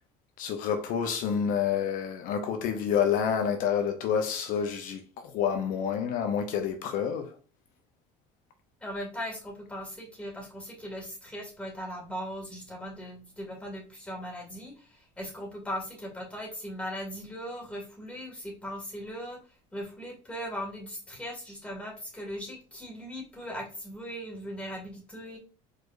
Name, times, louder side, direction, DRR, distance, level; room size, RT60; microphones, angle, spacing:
voice 1, 0.4-7.4, left 7 dB, 65° left, 0.7 m, -28 dB
voice 2, 8.8-19.4 19.7-25.4, equal, 10° left, 2.1 m, -39 dB
4.8 x 4.2 x 2.6 m
cardioid pair, 135°, 16 cm